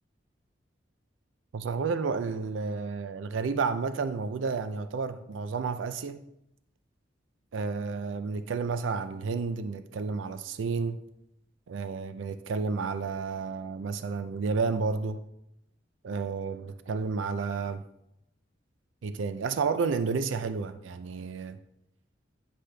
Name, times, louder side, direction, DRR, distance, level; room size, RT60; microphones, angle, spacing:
voice 1, 1.5-6.2 7.5-11.0 11.7-15.2 16.0-17.8 19.0-21.6, right 4 dB, 90° right, 0.4 m, -31 dB
9.7 x 5.1 x 3.3 m
head